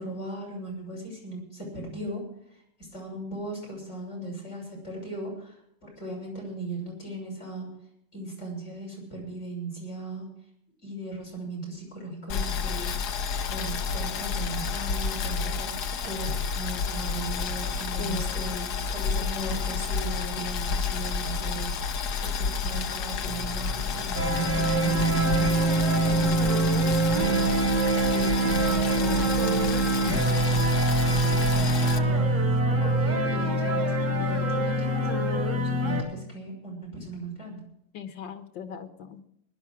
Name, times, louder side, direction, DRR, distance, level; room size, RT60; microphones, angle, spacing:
voice 1, 0.0-2.2 2.5-2.6 2.9-7.7 8.1-10.3 10.8-13.0 13.5-15.7 16.0-27.7 28.1-30.6 31.0-32.2 32.8-37.6, right 2 dB, 40° left, -2 dB, 6.8 m, -37 dB
Boiling, 12.3-32.0, left 5 dB, 65° left, 1.4 m, -30 dB
voice 2, 18.0-18.4 37.9-39.3, left 8 dB, 90° left, 8 dB, 2.0 m, -38 dB
sound 1, 23.3-32.6, right 2 dB, 15° left, 1.3 m, -43 dB
sound 2, 24.1-36.0, right 2 dB, 75° right, 3.2 m, -24 dB
20.0 x 11.0 x 4.8 m, 0.74 s
omnidirectional pair, 1.9 m